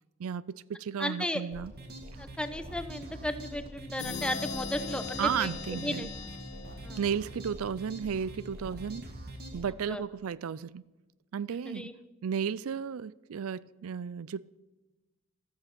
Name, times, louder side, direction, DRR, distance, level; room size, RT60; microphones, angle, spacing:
voice 1, 0.2-1.7 5.2-6.1 7.0-9.1 9.5-10.8 11.3-11.9 12.2-14.6, right 7 dB, 75° right, 0.4 m, -34 dB
voice 2, 1.0-1.4 2.2-6.1 6.8-7.0 9.9-10.0 11.7-11.9, left 1 dB, 5° left, 0.9 m, -35 dB
sound 1, 1.5-9.7, equal, 45° right, 2.3 m, -44 dB
sound 2, 4.0-7.6, left 4 dB, 80° left, 2.0 m, -40 dB
14.0 x 14.0 x 6.0 m
head